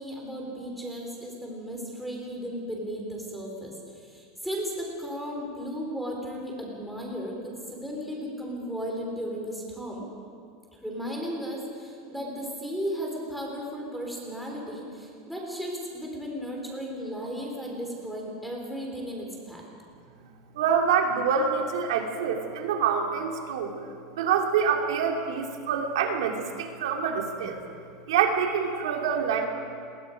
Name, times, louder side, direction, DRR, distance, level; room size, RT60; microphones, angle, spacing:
voice 1, 0.0-10.1 10.7-19.7, equal, ahead, -2 dB, 3.6 m, -35 dB
voice 2, 20.5-23.7 24.1-27.6 28.1-29.5, right 7 dB, 85° right, 2 dB, 2.9 m, -26 dB
28.0 x 22.0 x 5.2 m, 2.4 s
supercardioid pair, 180°, 3 cm